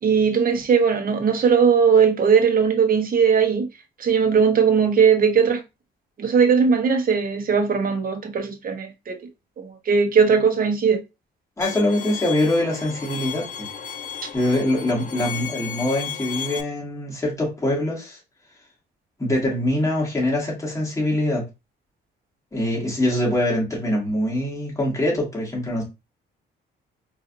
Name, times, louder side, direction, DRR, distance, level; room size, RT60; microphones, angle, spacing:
voice 1, 0.0-3.7 4.0-5.6 6.2-9.1 9.6-11.0, right 6 dB, 45° right, 0.9 m, -19 dB
Bowed string instrument, 11.6-16.6, left 8 dB, 45° left, 0.5 m, -34 dB
voice 2, 11.6-13.7 14.3-18.2 19.2-21.4 22.5-25.8, left 1 dB, 15° left, 2.0 m, -23 dB
3.9 x 2.5 x 2.6 m
cardioid pair, 90°, 20 cm